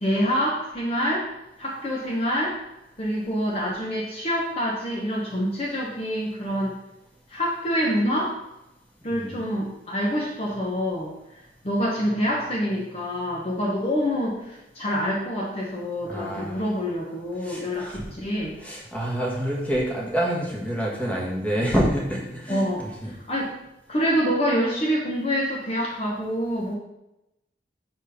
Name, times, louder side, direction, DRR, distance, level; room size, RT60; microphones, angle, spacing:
voice 1, 0.0-1.3 1.6-2.6 3.0-6.8 7.3-8.4 9.0-11.1 11.6-18.6 22.5-22.8 23.3-23.5 23.9-26.7, equal, 35° left, -3 dB, 0.9 m, -26 dB
voice 2, 9.0-9.4 16.1-16.6 17.4-18.1 18.6-23.1, equal, 10° left, -3 dB, 1.4 m, -27 dB
5.1 x 4.5 x 5.6 m, 0.92 s
head